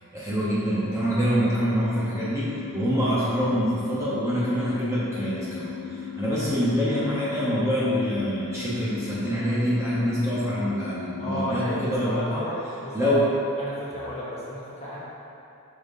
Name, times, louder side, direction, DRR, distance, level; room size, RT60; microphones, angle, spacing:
voice 1, 0.1-12.4 12.9-13.3, equal, 15° right, -9 dB, 0.9 m, -25 dB
sound 1, 1.9-11.9, left 7 dB, 85° left, 0.9 m, -37 dB
voice 2, 11.2-13.2 13.6-15.0, left 1 dB, 30° left, -8 dB, 1.2 m, -33 dB
7.1 x 5.6 x 2.7 m, 2.8 s
head